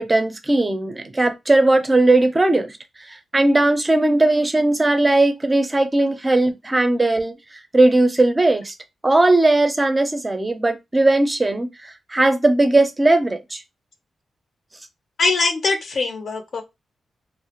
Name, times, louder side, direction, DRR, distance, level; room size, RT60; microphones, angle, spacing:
voice 1, 0.0-2.7 3.3-7.3 7.7-8.7 9.0-13.6, right 2 dB, 20° right, 0.5 m, -18 dB
voice 2, 15.2-16.6, left 3 dB, 55° left, 0.6 m, -22 dB
2.3 x 2.1 x 2.8 m
cardioid pair, 95°, 0 cm